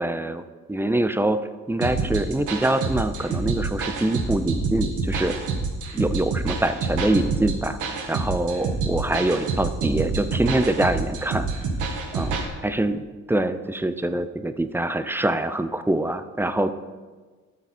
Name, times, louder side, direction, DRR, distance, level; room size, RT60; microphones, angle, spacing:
voice 1, 0.0-1.4 1.7-5.4 5.9-11.5 12.1-12.3 12.6-16.7, right 1 dB, 5° right, 11 dB, 0.5 m, -24 dB
sound 1, 1.8-12.5, right 4 dB, 90° right, 1.6 m, -27 dB
12.0 x 7.5 x 4.4 m, 1.4 s
cardioid pair, 90°, 30 cm